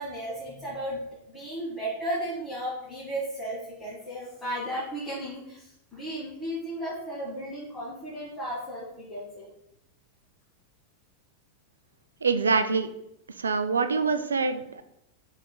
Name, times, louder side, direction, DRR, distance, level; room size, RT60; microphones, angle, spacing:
voice 1, 0.0-9.5, right 1 dB, 15° left, -9 dB, 1.5 m, -35 dB
voice 2, 12.2-12.9 13.4-14.8, right 4 dB, 75° right, 10 dB, 0.3 m, -25 dB
5.1 x 4.1 x 2.2 m, 0.80 s
figure-of-eight pair, 90°, 0 cm